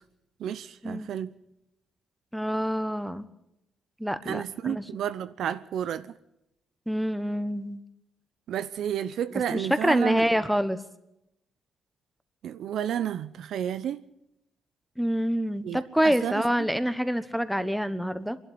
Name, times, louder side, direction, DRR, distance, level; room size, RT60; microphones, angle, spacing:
voice 1, 0.4-1.3 4.2-6.2 8.5-10.3 12.4-14.1 15.6-16.4, right 9 dB, 75° right, 0.7 m, -31 dB
voice 2, 2.3-3.3 4.0-4.8 6.9-7.8 9.3-10.8 15.0-18.4, equal, ahead, 1.2 m, -27 dB
24.0 x 11.5 x 9.5 m
cardioid pair, 90°, 0 cm